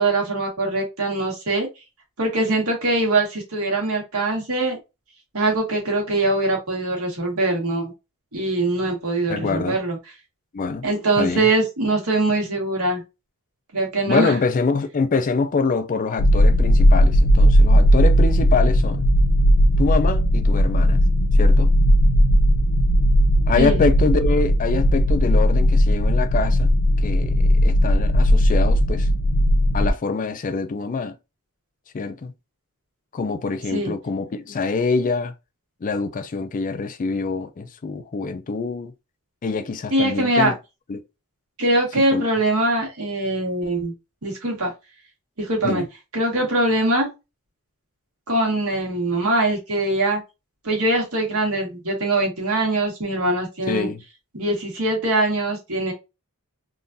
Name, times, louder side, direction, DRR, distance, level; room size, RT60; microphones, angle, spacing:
voice 1, 0.0-1.7 2.2-4.8 5.3-7.9 8.3-10.0 10.8-13.0 13.7-14.3 23.6-23.8 33.7-33.9 39.9-40.5 41.6-43.9 44.2-44.7 45.4-45.8 46.1-47.1 48.3-50.2 50.6-53.9 54.3-55.9, right 2 dB, 75° right, 1.6 m, -22 dB
voice 2, 9.3-9.8 10.5-10.9 11.2-11.5 14.1-19.0 19.8-21.0 21.3-21.7 23.5-26.7 27.0-29.1 29.7-31.1 31.9-32.3 33.1-35.3 35.8-38.9 39.4-40.5 40.9-41.0 42.0-42.3 45.6-45.9 53.7-54.0, left 4 dB, 40° left, 0.4 m, -25 dB
sound 1, 16.2-29.9, equal, 90° left, 0.5 m, -17 dB
3.7 x 2.5 x 2.6 m
head